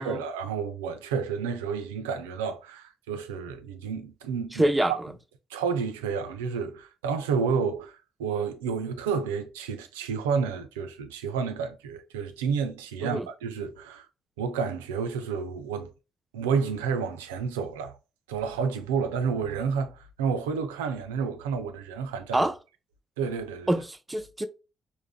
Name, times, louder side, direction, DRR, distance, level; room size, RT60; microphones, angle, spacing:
voice 1, 0.0-4.6 5.5-14.1 14.4-15.9 16.3-18.0 18.3-22.5 23.2-23.8, right 6 dB, 85° right, 0.3 m, -30 dB
voice 2, 4.5-4.9 13.0-13.3 22.3-22.5 23.7-24.5, right 1 dB, 15° right, 0.5 m, -25 dB
3.5 x 2.0 x 2.2 m
hypercardioid pair, 45°, 0 cm